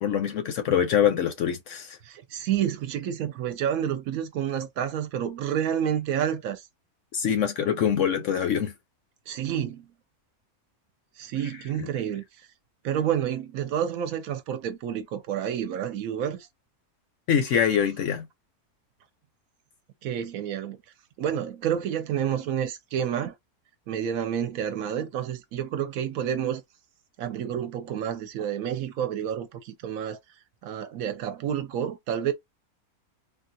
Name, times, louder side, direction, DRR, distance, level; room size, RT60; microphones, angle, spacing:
voice 1, 0.0-2.0 7.1-8.7 17.3-18.3, left 8 dB, 65° left, 0.8 m, -24 dB
voice 2, 2.0-6.7 9.3-9.9 11.2-12.2 12.8-16.5 20.0-20.8 21.2-23.3 23.9-26.6 27.2-30.2 30.6-32.3, right 9 dB, 70° right, 1.0 m, -29 dB
3.5 x 2.3 x 2.6 m
omnidirectional pair, 1.6 m